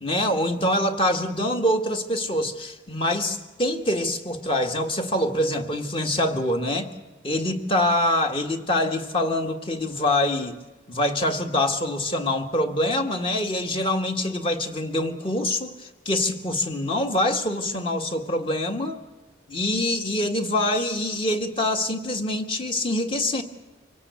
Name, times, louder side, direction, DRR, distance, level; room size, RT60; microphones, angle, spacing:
voice 1, 0.0-6.9 7.2-10.6 10.9-19.0 19.5-23.4, left 1 dB, 30° left, 6 dB, 1.7 m, -25 dB
25.0 x 17.0 x 8.3 m, 1.2 s
head